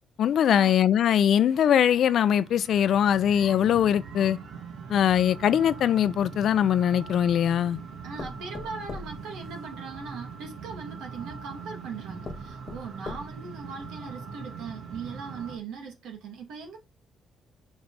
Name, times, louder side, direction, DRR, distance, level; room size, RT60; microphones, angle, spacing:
voice 1, 0.2-4.4 4.9-7.8, left 9 dB, 65° left, 0.5 m, -22 dB
sound 1, 1.5-15.6, right 5 dB, 70° right, 1.4 m, -42 dB
sound 2, 6.6-7.4 8.2-10.1 11.1-11.2 11.8-11.9 12.2-13.6 14.1-14.2 14.5-14.6, left 4 dB, 40° left, 1.1 m, -42 dB
voice 2, 8.0-16.8, right 5 dB, 90° right, 2.2 m, -40 dB
5.5 x 5.2 x 4.7 m
cardioid pair, 90°, 0 cm